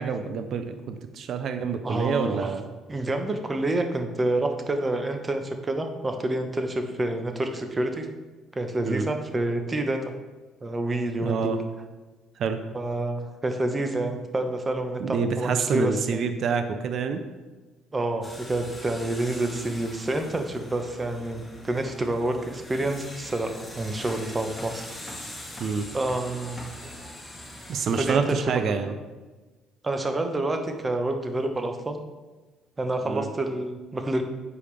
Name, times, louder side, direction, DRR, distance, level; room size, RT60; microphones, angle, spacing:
voice 1, 0.0-2.7 8.8-9.1 11.2-11.6 12.4-12.6 15.0-17.2 25.6-25.9 27.7-28.9 33.1-33.3, right 6 dB, 60° right, 8 dB, 0.5 m, -27 dB
voice 2, 1.8-2.5 2.9-8.1 8.5-10.1 10.6-11.6 12.7-16.3 17.9-24.9 25.9-26.6 28.0-28.4 29.8-32.0 32.8-34.2, right 2 dB, 25° right, 5 dB, 0.9 m, -28 dB
sound 1, 18.2-28.1, equal, 15° left, 1.6 m, -42 dB
7.0 x 4.8 x 3.3 m, 1.2 s
hypercardioid pair, 60°, 0 cm